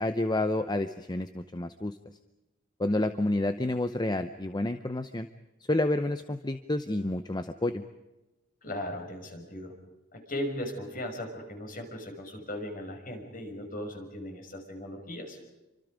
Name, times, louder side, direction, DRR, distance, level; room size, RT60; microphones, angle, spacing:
voice 1, 0.0-2.0 2.8-5.3 5.7-7.8, left 1 dB, 20° left, 10 dB, 0.7 m, -29 dB
voice 2, 8.6-9.7 10.1-15.4, left 1 dB, 45° left, 4 dB, 5.8 m, -37 dB
29.5 x 25.5 x 5.2 m, 1.0 s
head